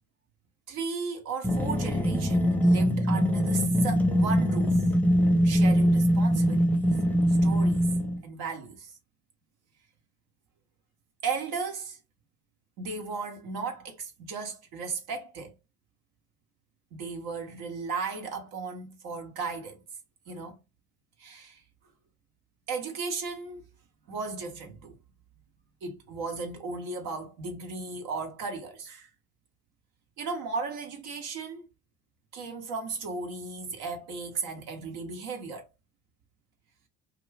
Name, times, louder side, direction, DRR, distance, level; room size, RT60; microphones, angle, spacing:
voice 1, 0.7-4.9 5.4-6.7 7.3-7.9 8.2-9.0 11.2-12.0 12.8-15.6 16.9-19.8 20.3-20.6 21.2-21.6 22.7-23.6 24.1-24.9 25.8-29.1 30.2-31.6 32.3-35.7, right 4 dB, 70° right, 0.8 m, -35 dB
sound 1, 1.4-8.2, equal, 5° left, 0.6 m, -23 dB
2.4 x 2.1 x 3.2 m
hypercardioid pair, 65°, 39 cm